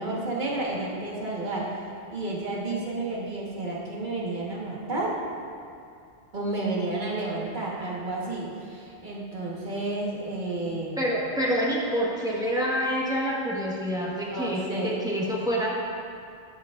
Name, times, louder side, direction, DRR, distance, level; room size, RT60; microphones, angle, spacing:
voice 1, 0.0-1.8 2.1-5.2 6.3-11.0 14.3-14.9, right 2 dB, 45° right, -4 dB, 1.3 m, -31 dB
voice 2, 11.0-15.7, equal, 5° right, -5 dB, 1.1 m, -27 dB
12.0 x 7.5 x 2.4 m, 2.4 s
omnidirectional pair, 1.1 m